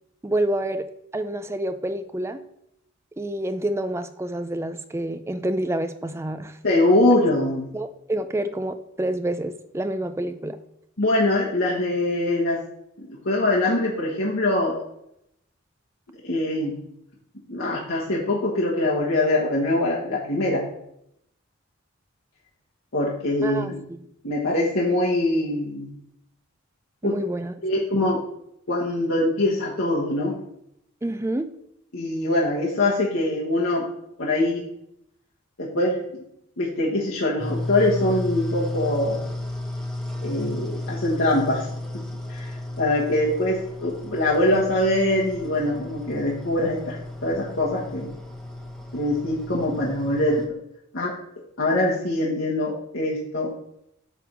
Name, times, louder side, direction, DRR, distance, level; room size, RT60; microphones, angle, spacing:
voice 1, 0.2-0.8 1.1-2.4 3.2-6.6 7.7-10.6 23.4-24.0 27.0-27.5 31.0-31.5, right 1 dB, 15° right, 8 dB, 0.4 m, -28 dB
voice 2, 6.6-7.7 11.0-12.6 13.0-14.8 16.2-16.8 17.5-20.6 22.9-23.7 24.2-25.9 27.0-27.2 27.6-28.2 28.7-30.3 31.9-33.9 34.2-34.6 35.6-36.0 36.6-39.2 40.2-41.7 42.3-48.1 48.9-50.5 50.9-51.1 51.6-53.5, left 1 dB, 75° left, -5 dB, 1.4 m, -23 dB
sound 1, 37.4-50.5, left 1 dB, 5° left, 1.1 m, -34 dB
9.3 x 3.6 x 6.1 m, 0.77 s
head